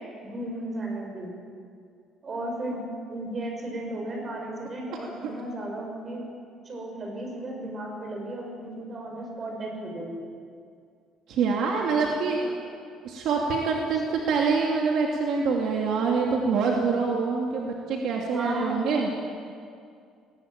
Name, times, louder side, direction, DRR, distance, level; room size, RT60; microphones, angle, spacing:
voice 1, 0.2-1.3 2.2-2.8 3.1-6.2 6.6-10.1 11.7-12.1 16.6-16.7 18.3-18.9, right 1 dB, 30° right, 1 dB, 5.9 m, -35 dB
voice 2, 11.3-12.6 13.0-14.0 14.3-19.1, right 4 dB, 60° right, -1 dB, 2.6 m, -25 dB
20.0 x 19.5 x 9.0 m, 2.3 s
cardioid pair, 150°, 0 cm